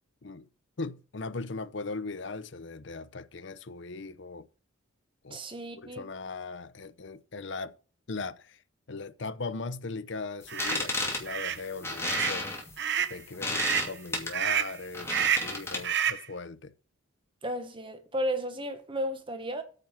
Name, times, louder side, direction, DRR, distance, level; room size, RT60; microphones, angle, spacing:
voice 1, 0.8-4.5 5.2-5.4 5.8-7.7 8.1-8.6 8.9-12.5 13.1-16.7, left 3 dB, 60° left, 0.7 m, -39 dB
voice 2, 5.3-6.1 17.4-19.6, equal, 25° right, 1.4 m, -33 dB
sound 1, 10.4-16.1, left 2 dB, 10° left, 2.5 m, -33 dB
sound 2, 10.5-10.8 11.3-11.6 12.0-12.4 12.8-13.2 13.5-13.9 14.3-14.8 15.1-15.5 15.8-16.3, right 9 dB, 55° right, 1.0 m, -29 dB
9.1 x 5.6 x 7.5 m
head